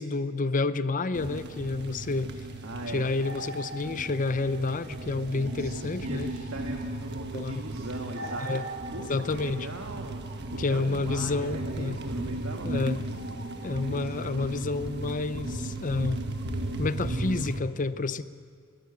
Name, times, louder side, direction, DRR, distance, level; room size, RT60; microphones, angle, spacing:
voice 1, 0.0-2.3 2.9-6.3 7.3-7.6 8.4-8.6 9.1-9.7 10.6-12.0 12.6-13.0 13.6-16.2 16.8-18.2, left 3 dB, 40° left, 14 dB, 0.7 m, -29 dB
sound 1, 1.1-17.6, right 1 dB, 55° right, 1.4 m, -35 dB
voice 2, 2.6-3.1 5.3-8.5 8.9-13.2 13.8-14.5, right 2 dB, 85° right, 2 dB, 1.7 m, -41 dB
30.0 x 12.0 x 8.6 m, 2.1 s
head